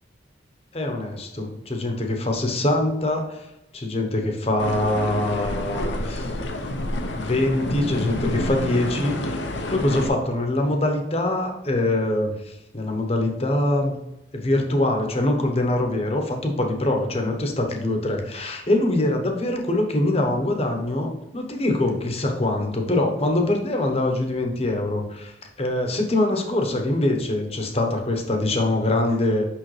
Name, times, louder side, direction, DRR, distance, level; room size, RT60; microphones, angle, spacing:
voice 1, 0.7-3.5 3.7-6.3 7.1-9.4 9.7-14.0 14.3-29.5, left 1 dB, 35° left, 3 dB, 1.0 m, -24 dB
sound 1, 4.6-10.1, left 1 dB, 75° left, 0.8 m, -29 dB
6.3 x 5.6 x 3.2 m, 0.91 s
head